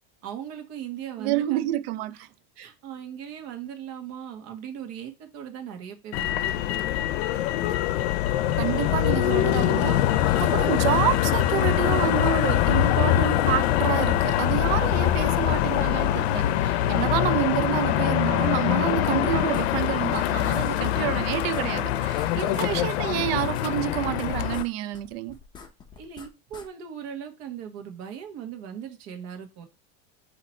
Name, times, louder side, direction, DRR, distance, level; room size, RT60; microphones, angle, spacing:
voice 1, 0.2-1.7 2.5-6.6 22.3-22.9 26.0-29.7, right 9 dB, 50° right, 1.3 m, -39 dB
voice 2, 1.2-2.3 8.5-25.4, right 14 dB, 70° right, 0.5 m, -28 dB
Motor vehicle (road), 6.1-24.6, left 12 dB, 85° left, 0.6 m, -23 dB
sound 1, 19.5-20.2 20.5-20.7 20.9-21.0 21.3-22.7 23.0-24.7 24.9-26.7, left 6 dB, 15° left, 0.6 m, -45 dB
4.2 x 2.9 x 4.2 m
supercardioid pair, 150°, 31 cm